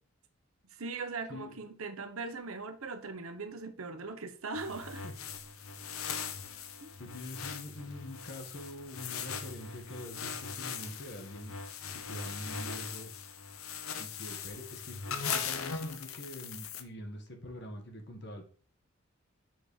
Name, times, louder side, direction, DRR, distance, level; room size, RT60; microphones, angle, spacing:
voice 1, 0.7-5.0 6.8-6.9, right 4 dB, 75° right, 1.0 m, -40 dB
voice 2, 1.3-1.7 5.0-5.1 7.0-11.5 11.9-13.1 13.9-18.5, left 1 dB, 50° left, 1.6 m, -45 dB
sound 1, 4.6-16.8, left 6 dB, 75° left, 0.9 m, -40 dB
6.6 x 6.3 x 3.3 m
head